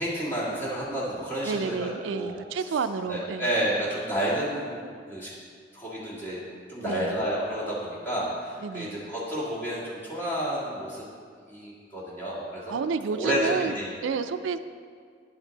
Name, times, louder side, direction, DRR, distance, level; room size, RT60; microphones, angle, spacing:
voice 1, 0.0-2.8 3.1-5.3 5.7-6.4 6.7-11.1 11.5-12.8 13.1-14.1, equal, 10° left, -8 dB, 1.7 m, -31 dB
voice 2, 1.4-3.5 6.8-7.1 8.6-9.0 12.7-13.8 14.0-14.6, right 5 dB, 80° right, 11 dB, 0.3 m, -30 dB
9.8 x 4.4 x 3.9 m, 2.1 s
head